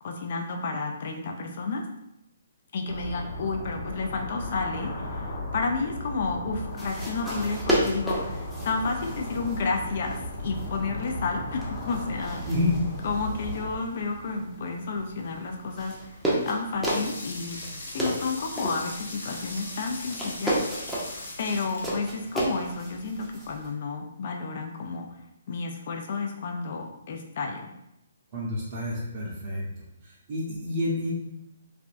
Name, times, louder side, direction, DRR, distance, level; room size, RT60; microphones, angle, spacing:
voice 1, 0.0-1.8 2.7-12.5 13.0-20.6 21.4-25.1 25.5-27.7, left 4 dB, 50° left, 2 dB, 0.3 m, -31 dB
sound 1, 2.9-13.8, left 1 dB, 35° left, 0.9 m, -36 dB
sound 2, 6.7-23.7, right 1 dB, 5° right, 0.6 m, -34 dB
voice 2, 12.5-12.8 28.3-29.6 30.0-31.1, left 2 dB, 45° right, -6 dB, 0.7 m, -29 dB
sound 3, 16.8-22.7, left 2 dB, 75° left, 0.7 m, -40 dB
3.4 x 2.1 x 2.5 m, 0.86 s
hypercardioid pair, 140°, 0 cm